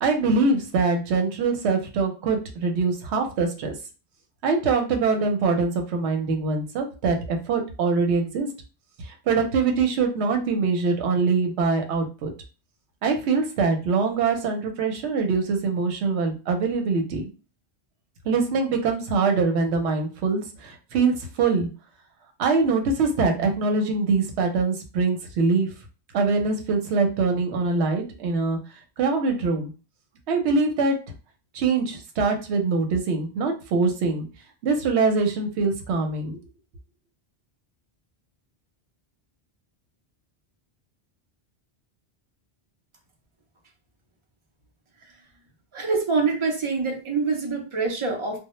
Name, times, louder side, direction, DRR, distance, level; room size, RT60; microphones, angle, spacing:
voice 1, 0.0-3.7 4.4-8.5 9.0-12.3 13.0-17.3 18.3-21.7 22.4-25.7 26.1-28.6 29.0-29.7 30.3-31.0 31.5-34.3 34.6-36.4, right 4 dB, 85° right, 4 dB, 0.9 m, -23 dB
voice 2, 45.7-48.4, right 4 dB, 40° right, 2 dB, 0.5 m, -25 dB
2.1 x 2.0 x 2.9 m, 0.33 s
omnidirectional pair, 1.1 m